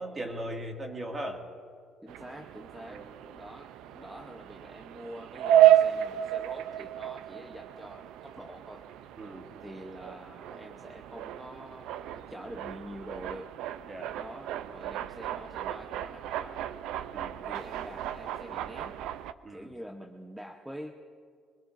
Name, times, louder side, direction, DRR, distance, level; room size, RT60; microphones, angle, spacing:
voice 1, 0.0-1.4 2.9-3.1 9.2-9.5 13.9-14.1 17.1-17.4 19.4-19.7, right 1 dB, 25° right, 2 dB, 2.0 m, -38 dB
voice 2, 2.0-3.0 3.3-8.8 9.6-13.5 14.2-16.6 17.5-19.0 19.5-20.9, equal, 5° right, 2 dB, 0.8 m, -46 dB
sound 1, 2.1-19.3, right 12 dB, 80° right, 0.5 m, -31 dB
24.5 x 20.0 x 2.6 m, 2.2 s
cardioid pair, 125°, 0 cm